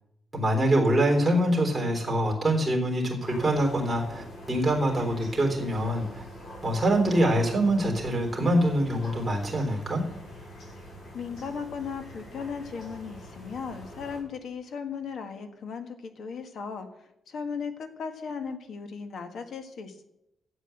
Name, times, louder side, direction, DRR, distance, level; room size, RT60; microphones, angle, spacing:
voice 1, 0.3-6.2 6.6-10.0, right 1 dB, 10° right, -2 dB, 3.7 m, -24 dB
sound 1, 3.2-14.2, equal, 85° left, 6.5 m, -44 dB
voice 2, 11.1-16.9 17.3-20.0, left 6 dB, 60° left, 8 dB, 1.6 m, -36 dB
12.5 x 8.1 x 7.7 m, 0.84 s
wide cardioid pair, 170°, 0 cm